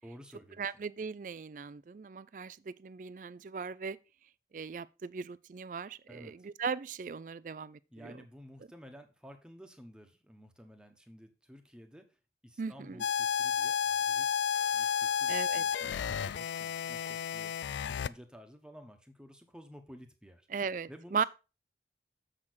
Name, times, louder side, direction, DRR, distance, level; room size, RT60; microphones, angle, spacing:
voice 1, 0.0-0.8 6.1-6.5 7.9-14.4 14.7-20.5 20.9-21.2, equal, 5° right, 1.1 m, -53 dB
voice 2, 0.6-4.0 4.5-8.2 12.6-13.0 15.3-15.6 20.5-21.2, right 5 dB, 45° right, 0.4 m, -38 dB
sound 1, 13.0-18.1, left 7 dB, 90° left, 0.3 m, -31 dB
7.3 x 6.6 x 4.0 m
head